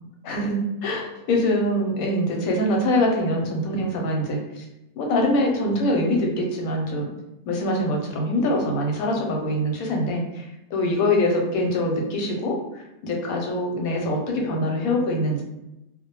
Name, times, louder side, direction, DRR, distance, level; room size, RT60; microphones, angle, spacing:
voice 1, 0.2-4.6 5.0-7.1 7.5-15.4, left 1 dB, 85° left, 0 dB, 1.0 m, -24 dB
2.3 x 2.1 x 2.9 m, 0.94 s
omnidirectional pair, 1.5 m